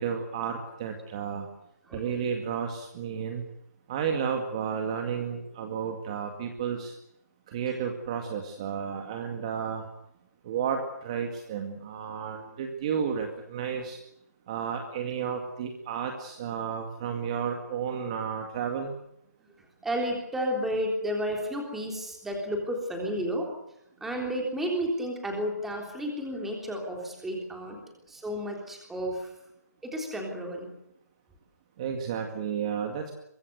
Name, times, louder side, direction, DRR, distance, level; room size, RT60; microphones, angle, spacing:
voice 1, 0.0-1.5 1.9-3.4 3.9-6.9 7.5-9.8 10.4-14.0 14.5-18.9 31.8-33.1, right 7 dB, 20° right, 4 dB, 2.1 m, -32 dB
voice 2, 19.8-23.5 24.0-27.8 28.1-29.3 29.8-30.7, equal, 5° right, 1 dB, 3.5 m, -32 dB
24.0 x 21.5 x 8.2 m, 0.79 s
hypercardioid pair, 170°, 9 cm